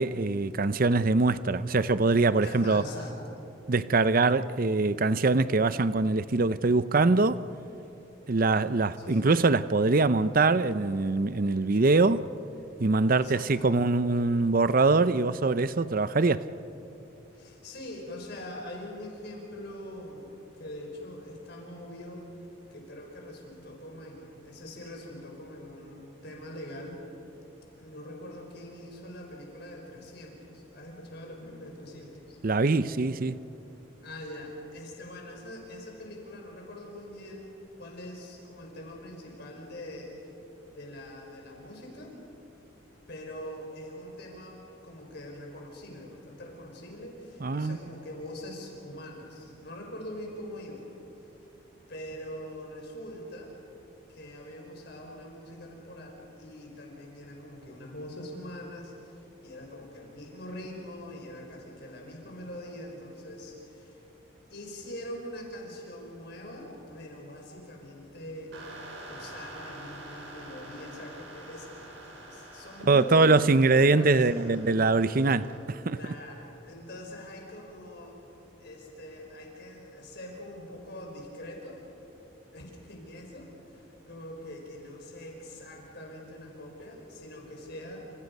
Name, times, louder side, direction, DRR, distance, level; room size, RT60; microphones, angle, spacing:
voice 1, 0.0-2.8 3.7-7.4 8.3-12.3 12.8-16.5 32.4-33.4 47.4-47.8 72.9-76.0, right 3 dB, 45° right, 0.6 m, -23 dB
voice 2, 2.4-3.4 9.0-9.3 13.2-13.7 17.3-20.3 20.6-22.2 22.7-27.0 27.8-32.4 34.0-40.1 40.7-42.2 43.1-50.9 51.9-53.5 54.1-64.0 64.5-68.6 69.1-73.7 74.0-74.6 75.9-78.2 78.6-81.8 82.5-88.1, left 1 dB, 55° left, 5.0 m, -43 dB
sound 1, 68.5-75.6, right 1 dB, 65° right, 5.0 m, -46 dB
30.0 x 28.0 x 5.4 m
head